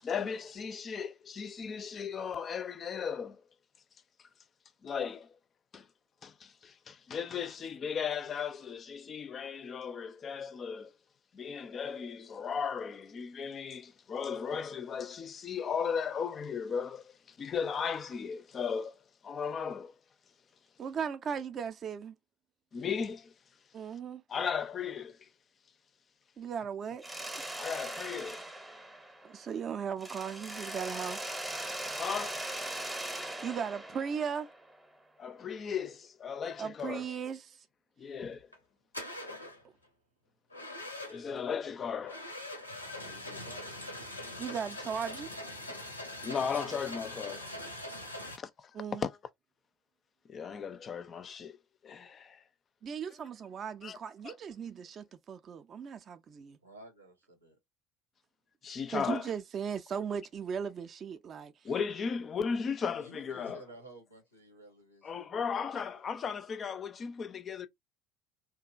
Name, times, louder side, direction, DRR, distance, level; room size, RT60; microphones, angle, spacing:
voice 1, 0.0-3.4 4.8-5.4 5.7-5.9 6.2-10.9 11.3-19.0 19.2-19.9 22.7-23.3 24.3-25.3 27.6-28.4 32.0-32.5 35.2-37.0 38.0-38.5 40.8-42.2 46.2-47.5 48.6-49.1 50.3-51.6 51.8-52.4 53.8-54.0 54.2-54.3 58.6-59.3 61.6-63.6 65.0-67.7, left 6 dB, 35° left, 0.4 m, -36 dB
voice 2, 20.8-22.1 23.7-24.2 26.4-27.1 27.3-27.4 29.2-31.4 33.1-34.5 36.6-37.6 44.4-45.3 48.7-49.0 52.8-56.6 58.9-61.5, right 7 dB, 35° right, 0.4 m, -37 dB
Mechanisms, 27.0-29.6 30.0-34.8, right 1 dB, 10° right, 0.7 m, -40 dB
sound 1, 38.3-38.6 38.9-39.6 40.5-41.4 42.0-48.4, left 1 dB, 90° left, 0.5 m, -42 dB
voice 3, 43.0-43.7 47.5-48.1 52.8-53.0 56.6-57.6 63.0-66.0, right 1 dB, 85° right, 0.8 m, -53 dB
2.8 x 2.3 x 2.4 m
figure-of-eight pair, 65°, 0 cm